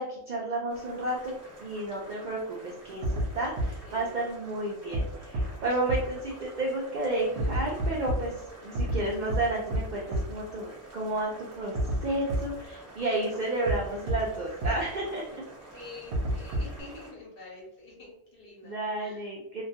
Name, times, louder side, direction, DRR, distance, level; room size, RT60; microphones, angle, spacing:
voice 1, 0.0-1.3 1.6-8.3 8.6-11.7 12.0-15.4 18.6-19.6, right 2 dB, 80° right, -3 dB, 0.4 m, -31 dB
Boiling, 0.7-17.1, right 2 dB, 15° right, 0.6 m, -49 dB
sound 1, 3.0-3.3 3.6-3.7 4.9-5.0 5.3-5.4 5.9-6.0 7.4-8.2 8.8-9.0 9.3-9.4 9.7-9.8 10.1-10.2 11.8-12.0 12.3-12.4 13.7-13.8 14.1-14.2 14.6-14.7 16.1-16.8, right 1 dB, 60° right, 0.7 m, -27 dB
voice 2, 3.8-4.2 6.6-6.7 14.7-15.1 15.7-19.2, left 2 dB, 55° left, -2 dB, 0.7 m, -47 dB
2.3 x 2.2 x 2.7 m, 0.80 s
omnidirectional pair, 1.3 m